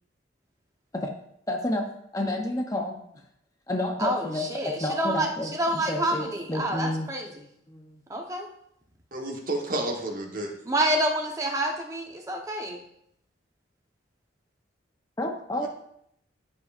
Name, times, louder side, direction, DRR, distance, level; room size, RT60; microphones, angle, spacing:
voice 1, 1.5-3.0 3.7-4.5 4.8-7.1 7.7-8.0 15.2-15.7, left 1 dB, 20° left, 3 dB, 0.7 m, -30 dB
voice 2, 4.0-7.5 8.1-8.5 10.7-12.8, right 1 dB, 15° right, 1 dB, 0.9 m, -28 dB
voice 3, 9.1-10.5, right 1 dB, 45° right, 1 dB, 1.2 m, -30 dB
14.5 x 5.4 x 2.5 m, 0.74 s
head